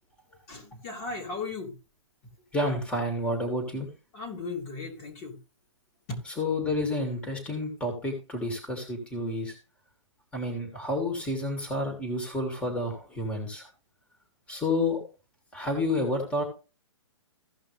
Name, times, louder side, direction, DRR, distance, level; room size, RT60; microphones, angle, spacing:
voice 1, 0.5-1.7 4.1-5.4 6.1-6.2, left 3 dB, 35° left, 3.0 m, -36 dB
voice 2, 2.5-3.9 6.2-9.5 10.3-13.7 14.5-15.0 15.5-16.4, left 1 dB, 5° left, 2.7 m, -30 dB
16.0 x 5.6 x 3.4 m
hypercardioid pair, 150°, 16 cm